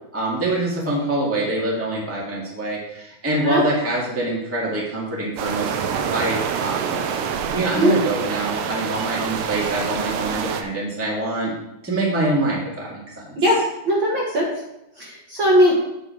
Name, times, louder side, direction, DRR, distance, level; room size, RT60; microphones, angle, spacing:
voice 1, 0.1-7.0 7.5-11.5 11.8-13.3, right 2 dB, 5° right, -4 dB, 1.6 m, -25 dB
sound 1, 5.4-10.6, right 7 dB, 75° right, 1.5 m, -26 dB
voice 2, 13.4-14.5 15.0-15.7, equal, 45° right, -4 dB, 1.9 m, -19 dB
8.8 x 6.4 x 4.6 m, 0.88 s
omnidirectional pair, 3.6 m